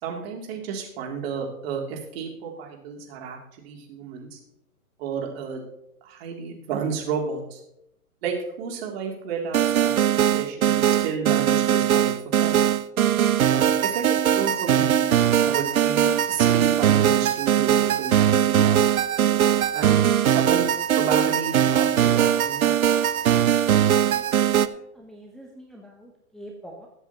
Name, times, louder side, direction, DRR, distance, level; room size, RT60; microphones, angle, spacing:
voice 1, 0.0-3.4 3.6-4.4 5.0-5.6 6.0-7.6 8.2-12.6 13.5-15.0 15.4-18.8 19.7-22.8, right 6 dB, 40° right, 0 dB, 3.0 m, -32 dB
sound 1, 9.5-24.7, right 10 dB, 65° right, 0.8 m, -20 dB
voice 2, 24.1-26.9, right 1 dB, ahead, -2 dB, 0.8 m, -45 dB
21.5 x 8.0 x 3.0 m, 0.80 s
hypercardioid pair, 130°, 45 cm